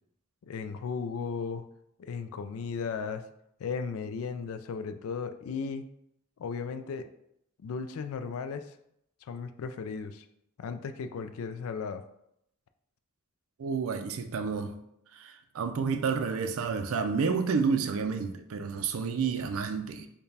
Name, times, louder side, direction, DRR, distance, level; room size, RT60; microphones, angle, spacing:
voice 1, 0.4-1.6 2.0-3.3 3.6-5.8 6.4-7.1 7.6-8.8 9.2-10.3 10.6-12.0, left 5 dB, 80° left, 9 dB, 0.3 m, -35 dB
voice 2, 13.6-14.7 15.1-20.1, right 5 dB, 80° right, 8 dB, 0.4 m, -30 dB
4.6 x 2.2 x 3.3 m, 0.77 s
head